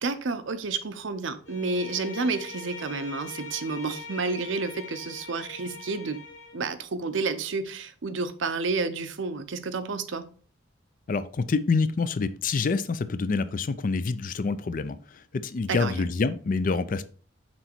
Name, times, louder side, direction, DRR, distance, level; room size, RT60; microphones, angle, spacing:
voice 1, 0.0-6.2 6.5-10.3 15.7-15.9, right 4 dB, 70° right, 11 dB, 0.6 m, -30 dB
Bowed string instrument, 1.4-6.6, left 3 dB, 65° left, 1.2 m, -42 dB
voice 2, 11.1-17.1, left 4 dB, 40° left, 13 dB, 0.4 m, -27 dB
6.1 x 3.9 x 4.4 m, 0.43 s
head